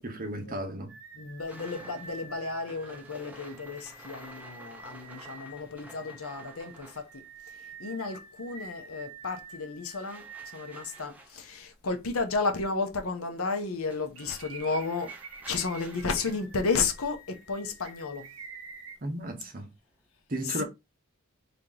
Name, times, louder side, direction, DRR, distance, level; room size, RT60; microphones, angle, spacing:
voice 1, 0.0-1.0 19.0-19.7 20.3-20.6, right 1 dB, 40° right, 0.9 m, -34 dB
sound 1, 0.9-11.0 11.6-11.7 14.2-19.0, right 4 dB, 70° right, 0.9 m, -48 dB
voice 2, 1.1-15.1 15.5-18.3 20.4-20.6, left 4 dB, 80° left, 0.9 m, -33 dB
sound 2, 1.5-8.2 8.4-20.1, right 1 dB, 5° right, 0.7 m, -53 dB
3.5 x 2.9 x 3.8 m
head